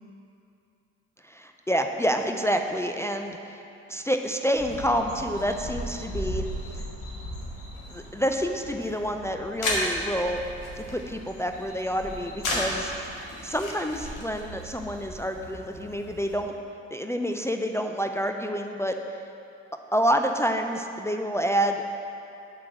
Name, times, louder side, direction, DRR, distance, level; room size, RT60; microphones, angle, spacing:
voice 1, 1.2-3.6 3.9-6.4 6.7-6.8 7.9-10.4 10.8-16.5 16.9-19.0 19.9-21.8, equal, 5° left, 4 dB, 0.4 m, -28 dB
sound 1, 4.6-16.4, left 1 dB, 55° left, 2.1 m, -35 dB
8.4 x 4.9 x 7.3 m, 2.7 s
figure-of-eight pair, 55°, 38 cm